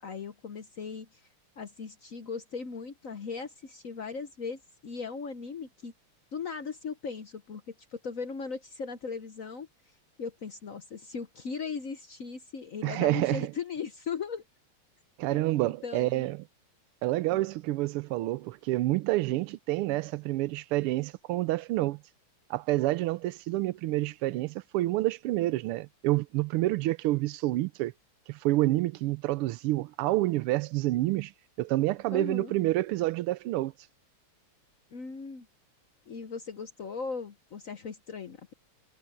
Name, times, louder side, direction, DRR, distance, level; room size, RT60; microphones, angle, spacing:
voice 1, 0.0-1.2 1.6-5.9 6.3-9.7 10.2-14.4 15.3-16.3 17.3-17.4 32.1-32.5 34.9-35.5 36.1-38.5, left 5 dB, 55° left, 1.0 m, -38 dB
voice 2, 12.8-13.5 15.2-16.4 17.0-22.0 22.5-27.9 28.3-31.3 31.6-33.7, right 17 dB, 85° right, 1.5 m, -28 dB
omnidirectional pair, 2.4 m